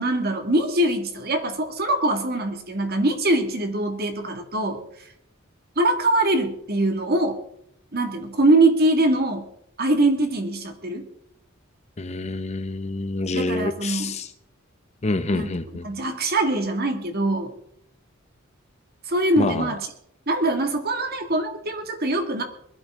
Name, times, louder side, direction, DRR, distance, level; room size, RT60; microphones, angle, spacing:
voice 1, 0.0-4.8 5.8-7.4 7.9-9.5 9.8-11.1 13.3-14.2 15.3-15.5 15.8-17.5 19.1-19.9 20.3-22.4, right 2 dB, 50° right, 5 dB, 2.0 m, -23 dB
voice 2, 12.0-14.3 15.0-15.9 19.4-19.8, left 2 dB, 30° left, 11 dB, 0.8 m, -27 dB
21.5 x 12.0 x 3.7 m, 0.71 s
head